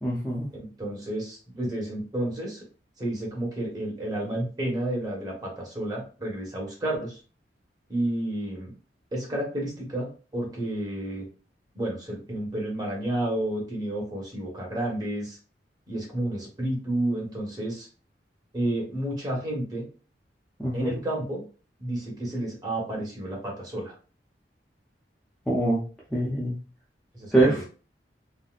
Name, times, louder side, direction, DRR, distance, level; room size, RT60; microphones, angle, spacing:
voice 1, 0.0-0.5 20.6-20.9 25.5-25.8 26.1-26.6 27.3-27.6, right 2 dB, 5° left, -7 dB, 0.7 m, -24 dB
voice 2, 0.5-2.6 3.0-7.2 7.9-8.7 9.1-10.1 10.3-11.2 11.7-15.4 15.9-17.9 18.5-19.8 20.7-21.4 21.8-23.9 27.1-27.6, right 1 dB, 25° right, -2 dB, 1.3 m, -31 dB
4.0 x 2.1 x 2.4 m, 0.36 s
head